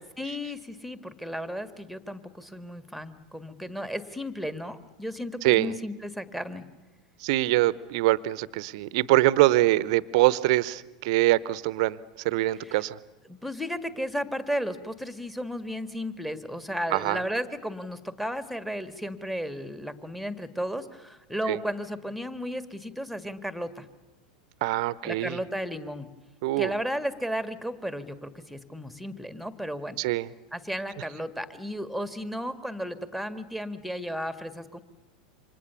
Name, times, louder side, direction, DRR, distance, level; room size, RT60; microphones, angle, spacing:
voice 1, 0.2-6.7 12.6-12.8 13.3-23.9 25.0-26.1 26.6-30.0 30.5-34.8, equal, ahead, 11 dB, 1.8 m, -34 dB
voice 2, 5.4-5.7 7.2-12.0 12.2-13.0 16.9-17.2 21.5-21.6 24.6-25.4 26.4-26.7 30.0-30.3, right 17 dB, 55° right, 19 dB, 0.9 m, -24 dB
28.5 x 25.5 x 7.0 m, 1.1 s
figure-of-eight pair, 90°, 4 cm